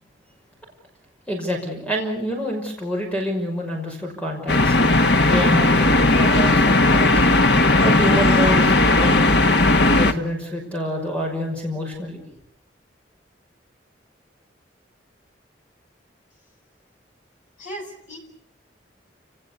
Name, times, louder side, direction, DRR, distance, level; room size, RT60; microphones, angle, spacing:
voice 1, 1.3-4.8 5.3-7.2 7.8-9.1 9.9-12.2, equal, 5° left, 1 dB, 5.8 m, -27 dB
sound 1, 4.5-10.1, left 2 dB, 65° left, 1.7 m, -16 dB
voice 2, 17.6-18.2, equal, 40° left, 2 dB, 6.7 m, -36 dB
29.5 x 19.0 x 8.5 m, 0.69 s
head